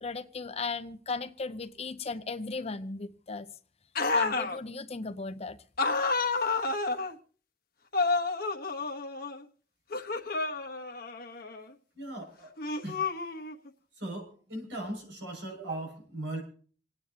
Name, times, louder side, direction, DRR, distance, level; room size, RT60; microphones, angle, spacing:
voice 1, 0.0-3.5 4.1-5.6, left 4 dB, 35° left, 11 dB, 0.7 m, -36 dB
sound 1, 4.0-4.6 5.8-7.1 7.9-9.4 9.9-11.7 12.6-13.7, left 3 dB, 60° left, 1.3 m, -30 dB
voice 2, 11.9-12.5 12.8-13.0 13.9-16.4, right 1 dB, 75° right, 0 dB, 6.6 m, -38 dB
28.0 x 9.4 x 2.9 m, 0.42 s
head